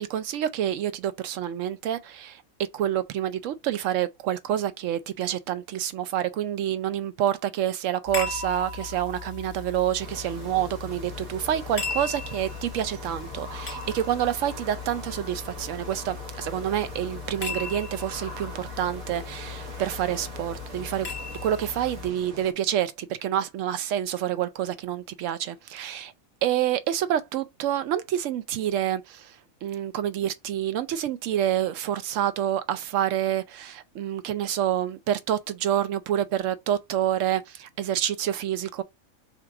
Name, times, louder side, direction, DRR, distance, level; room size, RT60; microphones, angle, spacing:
voice 1, 0.0-2.4 2.7-21.1 21.4-26.1 26.4-38.8, right 11 dB, 70° right, 0.9 m, -28 dB
sound 1, 8.1-22.1, left 5 dB, 40° left, 0.7 m, -38 dB
sound 2, 10.0-22.5, right 1 dB, 90° right, 1.8 m, -42 dB
3.6 x 2.8 x 4.7 m
omnidirectional pair, 1.4 m